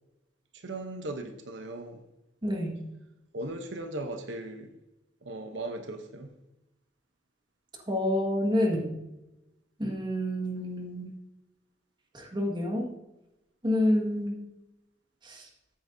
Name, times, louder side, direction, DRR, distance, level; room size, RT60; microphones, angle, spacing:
voice 1, 0.5-2.0 3.3-4.7 5.2-6.3, right 2 dB, 75° right, 5 dB, 0.9 m, -38 dB
voice 2, 2.4-2.8 7.9-8.9 9.8-11.1 12.1-12.9 13.6-14.4 15.2-15.5, left 1 dB, 25° right, 0 dB, 1.8 m, -28 dB
14.0 x 8.6 x 2.7 m, 0.96 s
head